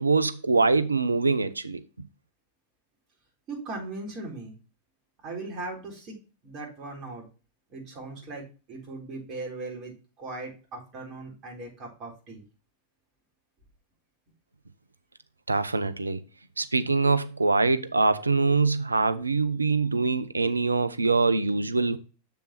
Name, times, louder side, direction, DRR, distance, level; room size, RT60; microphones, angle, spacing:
voice 1, 0.0-1.8 15.5-16.2 16.6-22.0, right 3 dB, 80° right, 0.6 m, -24 dB
voice 2, 3.5-4.5 5.2-6.2 6.4-7.3 7.7-9.9 10.2-12.4 20.0-20.1, right 2 dB, 35° right, 4.0 m, -38 dB
7.3 x 6.9 x 3.0 m
figure-of-eight pair, 90°, 0 cm